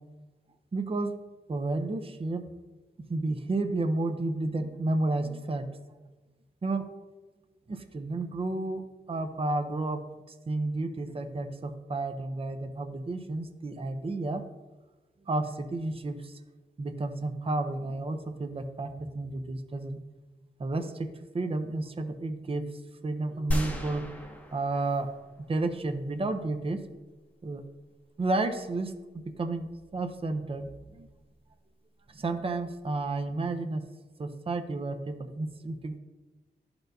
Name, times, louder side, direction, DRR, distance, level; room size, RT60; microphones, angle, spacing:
voice 1, 0.7-1.1 1.5-2.4 3.1-5.8 6.6-6.8 7.7-8.8 9.1-10.0 10.5-14.4 15.2-16.4 16.8-20.0 20.6-24.1 24.5-25.1 25.5-26.8 27.4-27.6 28.2-28.9 29.4-31.1 32.1-33.9 34.2-36.0, right 2 dB, 30° right, 7 dB, 0.6 m, -31 dB
sound 1, 23.5-25.8, equal, 10° left, 0.8 m, -34 dB
12.0 x 4.4 x 2.6 m, 1.2 s
wide cardioid pair, 85°, 18 cm